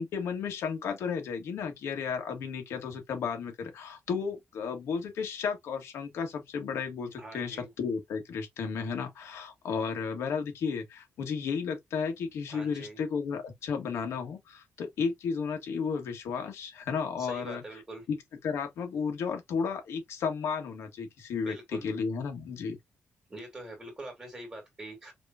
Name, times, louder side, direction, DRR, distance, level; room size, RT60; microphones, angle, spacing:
voice 1, 0.0-17.6 18.1-18.2 18.4-22.8, left 6 dB, 90° left, 1.7 m, -33 dB
voice 2, 7.2-7.7 12.5-13.0 17.2-18.1 21.4-21.9 23.3-25.1, right 2 dB, 20° right, 1.9 m, -44 dB
4.9 x 3.1 x 2.5 m
wide cardioid pair, 165°, 4 cm